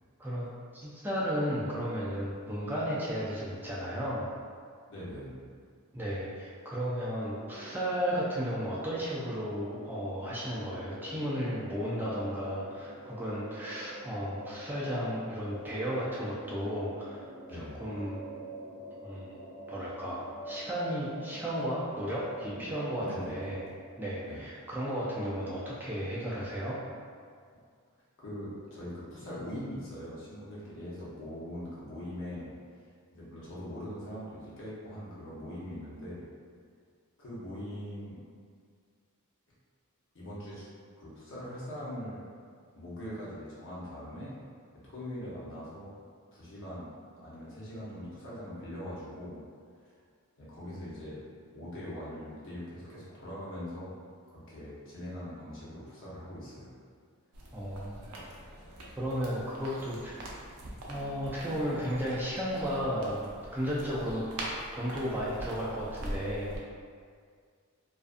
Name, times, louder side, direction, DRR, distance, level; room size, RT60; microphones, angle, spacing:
voice 1, 0.2-4.3 5.9-17.2 17.5-18.2 19.0-19.3 19.7-23.6 24.0-26.8 57.5-58.1 59.0-60.3 60.9-64.3 64.7-66.5, equal, 10° right, -7 dB, 0.3 m, -34 dB
voice 2, 4.9-5.4 17.5-17.8 22.5-22.7 23.0-23.3 24.3-24.4 28.2-32.5 33.1-36.2 37.2-38.2 40.1-40.7 41.0-42.2 42.7-44.3 44.8-45.9 46.3-46.9 47.2-49.4 49.8-50.0 50.4-51.1 51.5-53.9 54.3-56.7 58.1-58.2, equal, 60° left, -8 dB, 0.8 m, -42 dB
sound 1, 7.2-23.7, equal, 20° left, 0.7 m, -47 dB
sound 2, 57.3-66.6, right 1 dB, 90° right, 0.5 m, -43 dB
2.4 x 2.4 x 2.4 m, 2.1 s
head